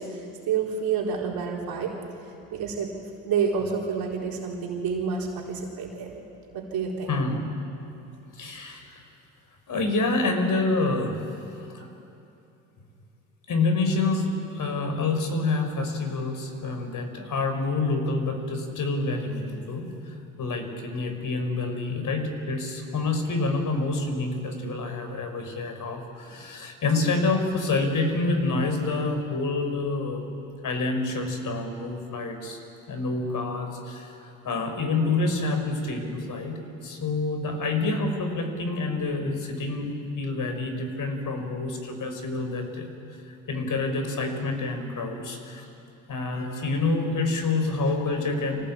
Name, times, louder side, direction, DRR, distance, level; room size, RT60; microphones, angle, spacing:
voice 1, 0.0-1.9 2.2-2.9 3.2-6.2 6.5-7.2, right 6 dB, 60° right, -2 dB, 4.2 m, -29 dB
voice 2, 7.1-7.4 8.3-9.0 9.7-11.2 11.7-11.9 13.5-30.3 30.6-32.6 32.9-42.9 43.5-45.7 46.1-48.7, left 3 dB, 50° left, 6 dB, 5.0 m, -27 dB
26.0 x 17.5 x 8.8 m, 2.8 s
hypercardioid pair, 60°, 41 cm